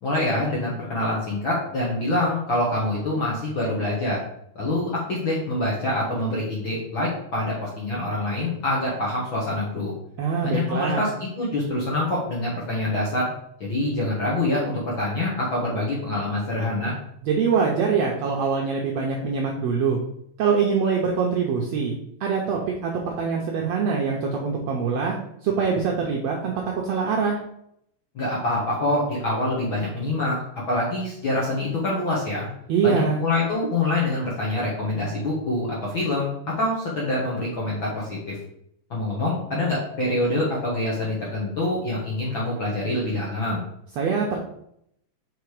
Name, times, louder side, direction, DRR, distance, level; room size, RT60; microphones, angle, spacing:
voice 1, 0.0-4.2 4.5-9.9 10.4-13.3 13.6-16.9 28.1-30.4 30.7-32.5 32.8-38.4 38.9-43.6, left 1 dB, 55° left, -4 dB, 1.5 m, -25 dB
voice 2, 10.2-11.0 17.2-20.0 20.4-21.9 22.2-25.1 25.4-26.5 26.8-27.4 32.7-33.2 44.0-44.4, right 5 dB, 75° right, 0 dB, 1.5 m, -24 dB
5.0 x 4.8 x 4.8 m, 0.74 s
omnidirectional pair, 3.9 m